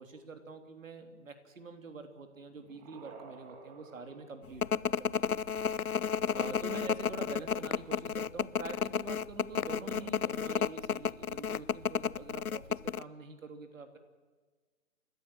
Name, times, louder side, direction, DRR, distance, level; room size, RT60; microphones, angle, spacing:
voice 1, 0.0-5.4 5.7-14.0, right 4 dB, 65° right, 7 dB, 3.3 m, -46 dB
sound 1, 2.3-5.0 6.5-8.2 9.6-10.1, right 5 dB, 20° right, 2.9 m, -55 dB
sound 2, 4.6-13.0, left 7 dB, 90° left, 0.7 m, -32 dB
28.5 x 14.5 x 7.6 m, 1.4 s
figure-of-eight pair, 135°, 42 cm